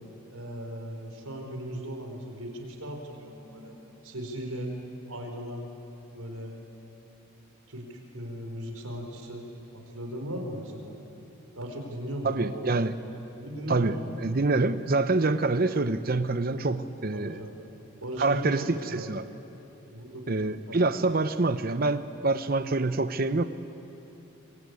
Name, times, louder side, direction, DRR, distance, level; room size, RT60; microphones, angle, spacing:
voice 1, 0.3-3.7 4.0-4.7 5.1-5.7 6.1-6.6 7.7-9.5 9.7-11.0 11.5-12.7 13.1-14.0 17.1-17.5 18.0-19.1 19.9-20.2 20.7-20.8, equal, 85° right, 3 dB, 4.4 m, -37 dB
voice 2, 12.2-12.9 13.7-17.4 18.2-18.6 18.9-19.2 20.3-23.4, right 3 dB, 45° right, 11 dB, 0.7 m, -26 dB
25.5 x 22.0 x 9.6 m, 2.9 s
head